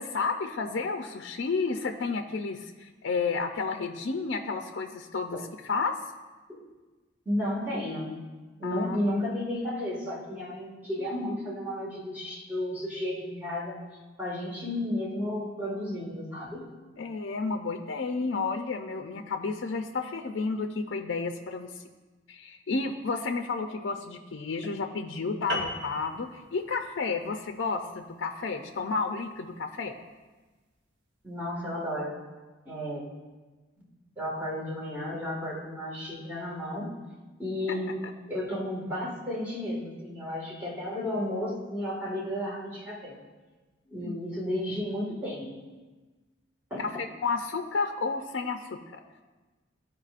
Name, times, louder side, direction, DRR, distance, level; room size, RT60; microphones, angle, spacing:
voice 1, 0.0-5.4 5.6-6.0 8.6-9.0 17.0-21.7 22.3-29.9 37.7-37.8 44.0-44.2 46.8-49.0, left 4 dB, 70° left, 5 dB, 0.4 m, -31 dB
voice 2, 7.2-8.2 8.6-13.8 14.2-16.8 31.2-32.2 32.6-33.0 33.8-33.9 34.2-36.9 37.4-38.0 38.3-43.2 43.9-45.7 46.7-46.9, left 1 dB, 10° right, -5 dB, 1.7 m, -33 dB
sound 1, 25.5-30.2, equal, 60° right, 1.1 m, -39 dB
14.0 x 4.8 x 2.5 m, 1.3 s
head